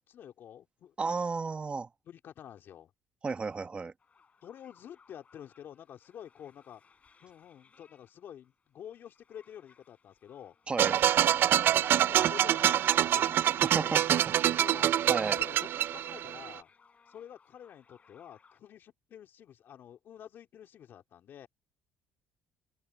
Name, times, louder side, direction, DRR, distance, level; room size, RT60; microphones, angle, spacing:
voice 1, 0.1-0.9 2.1-2.9 4.4-6.8 7.2-10.6 11.0-11.1 11.4-16.7 17.1-21.5, left 9 dB, 55° left, 2.7 m, -49 dB
voice 2, 1.0-1.9 3.2-3.9 10.7-11.0 13.6-14.2 15.1-15.4, right 4 dB, 25° right, 1.5 m, -33 dB
sound 1, 4.0-18.6, left 5 dB, 35° left, 7.9 m, -64 dB
sound 2, 10.8-16.5, right 11 dB, 60° right, 0.5 m, -26 dB
open air
cardioid pair, 105°, 4 cm